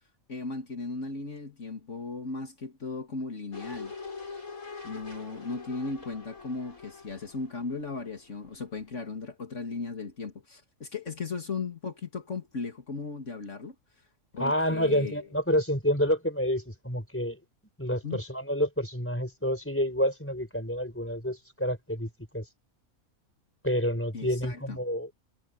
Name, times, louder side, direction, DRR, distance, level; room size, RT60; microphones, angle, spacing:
voice 1, 0.3-3.9 4.8-13.7 14.3-15.3 18.0-18.2 24.1-24.8, left 4 dB, 60° left, 2.7 m, -36 dB
sound 1, 3.5-8.5 8.8-8.9, left 4 dB, 80° left, 6.0 m, -43 dB
voice 2, 14.4-17.4 17.8-22.5 23.6-25.1, equal, 10° left, 4.0 m, -28 dB
omnidirectional pair, 1.5 m